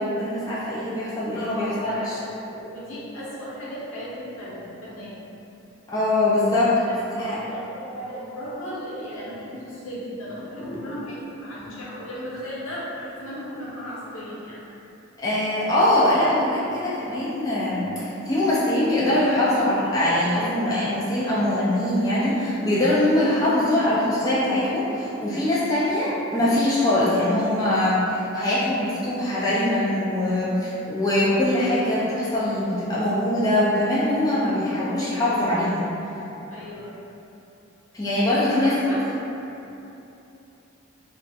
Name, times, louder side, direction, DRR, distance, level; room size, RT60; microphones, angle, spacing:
voice 1, 0.0-2.2 5.9-6.7 7.1-7.4 15.2-35.9 37.9-38.8, left 1 dB, 20° left, -9 dB, 0.3 m, -22 dB
voice 2, 1.3-5.2 6.8-14.6 16.6-16.8 25.5-25.6 36.5-36.9 38.5-39.1, equal, 80° left, -8 dB, 0.8 m, -36 dB
2.4 x 2.2 x 3.9 m, 2.9 s
head